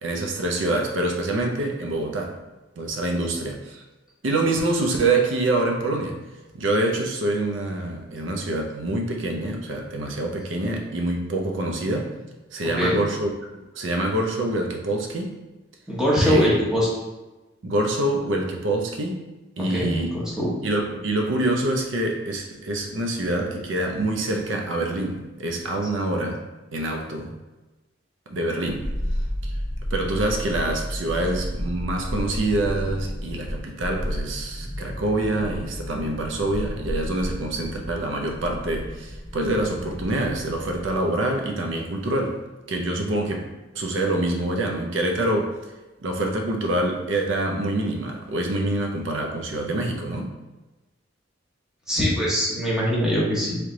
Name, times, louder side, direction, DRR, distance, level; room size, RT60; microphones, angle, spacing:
voice 1, 0.0-2.4 2.8-3.8 4.2-6.2 6.5-12.1 12.5-13.3 13.7-15.3 16.2-16.6 17.6-19.2 19.6-20.1 20.6-26.4 26.7-27.3 28.3-28.9 29.4-29.5 29.9-42.4 42.7-43.4 43.7-45.5 46.0-50.3, right 2 dB, 80° right, 2 dB, 0.6 m, -26 dB
voice 2, 15.9-16.9 19.7-20.5 51.9-53.6, equal, 5° right, -6 dB, 1.0 m, -22 dB
sound 1, 28.6-41.0 41.3-41.4, equal, 20° left, 0.7 m, -32 dB
3.2 x 3.2 x 3.7 m, 1.1 s
head